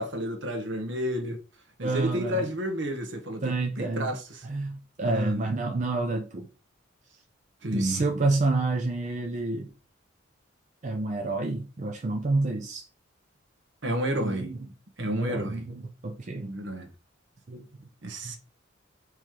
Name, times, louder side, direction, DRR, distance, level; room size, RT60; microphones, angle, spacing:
voice 1, 0.0-1.4 1.8-4.5 5.0-5.5 7.6-8.0 13.8-14.5 15.0-15.6 16.3-16.9 18.0-18.4, equal, 60° right, 1.0 m, -31 dB
voice 2, 1.8-2.5 3.4-4.1 4.4-6.5 7.7-9.7 10.8-12.9 14.2-14.6 15.0-16.5 17.5-17.9 18.2-18.4, right 3 dB, 35° right, 0.5 m, -29 dB
4.6 x 3.1 x 3.6 m
head